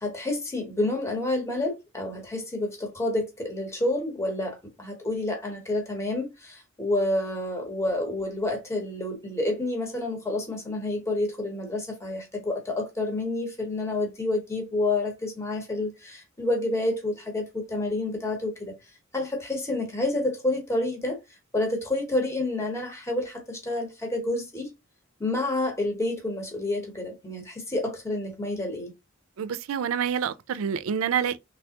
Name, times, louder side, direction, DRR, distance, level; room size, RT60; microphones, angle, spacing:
voice 1, 0.0-18.8 19.1-21.2 21.5-24.7 25.2-28.9, left 2 dB, 15° left, 0.9 m, -29 dB
voice 2, 29.4-31.4, right 8 dB, 80° right, 0.4 m, -27 dB
3.3 x 3.2 x 2.8 m
head